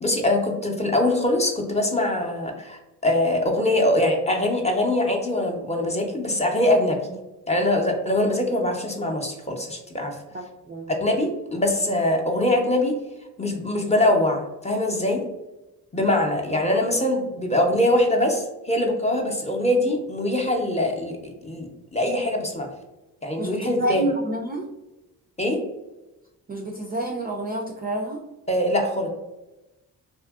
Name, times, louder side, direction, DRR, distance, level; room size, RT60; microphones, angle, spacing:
voice 1, 0.0-7.0 7.5-10.2 10.9-13.0 13.4-15.2 15.9-22.7 23.2-24.0 25.4-25.6 28.5-29.1, left 1 dB, 15° left, 1 dB, 0.6 m, -23 dB
voice 2, 10.3-10.9 23.4-24.6 26.5-28.2, right 1 dB, 25° right, 0 dB, 0.3 m, -29 dB
2.7 x 2.4 x 2.3 m, 1.0 s
supercardioid pair, 45°, 41 cm